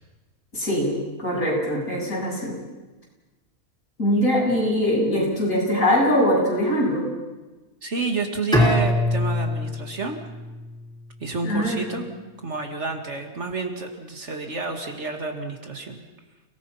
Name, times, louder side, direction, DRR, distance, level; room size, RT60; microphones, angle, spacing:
voice 1, 0.5-2.6 4.0-7.1 11.4-12.0, equal, 65° left, -3 dB, 8.0 m, -22 dB
voice 2, 7.8-10.2 11.2-12.1 12.4-16.0, right 3 dB, 50° right, 4 dB, 2.3 m, -29 dB
Bowed string instrument, 8.5-11.5, left 1 dB, 5° left, 3.7 m, -24 dB
30.0 x 18.5 x 5.7 m, 1.2 s
omnidirectional pair, 1.6 m